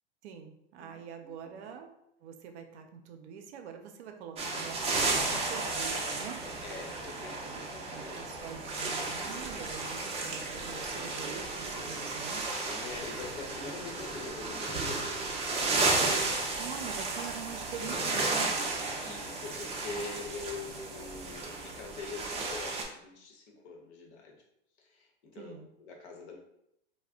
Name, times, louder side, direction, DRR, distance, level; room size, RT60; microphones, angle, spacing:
voice 1, 0.2-1.9 2.2-6.4 7.5-12.5 16.6-18.8 25.3-25.7, right 7 dB, 70° right, 5 dB, 0.6 m, -44 dB
voice 2, 0.8-1.8 6.6-9.5 12.7-15.2 19.0-24.4 24.8-25.5 25.8-26.4, left 4 dB, 70° left, 1 dB, 0.9 m, -45 dB
sound 1, 4.4-22.8, right 3 dB, 20° right, 0.5 m, -33 dB
2.3 x 2.1 x 3.5 m, 0.79 s
hypercardioid pair, 105°, 35 cm